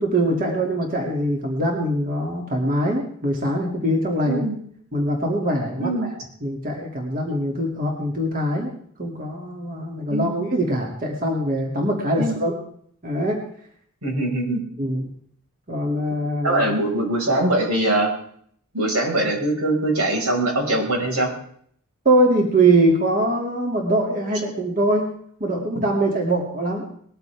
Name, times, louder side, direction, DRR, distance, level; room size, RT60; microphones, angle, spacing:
voice 1, 0.0-4.4 4.9-6.1 6.4-8.7 9.0-12.5 13.0-13.4 14.8-15.1 15.7-16.6 22.0-25.1 25.4-26.8, right 1 dB, 40° right, 0 dB, 2.6 m, -22 dB
voice 2, 4.2-4.6 5.8-6.1 10.1-10.4 12.2-12.4 14.0-14.6 16.4-18.1 18.7-21.3, right 1 dB, 85° right, 0 dB, 5.5 m, -22 dB
20.0 x 14.5 x 3.6 m, 0.62 s
head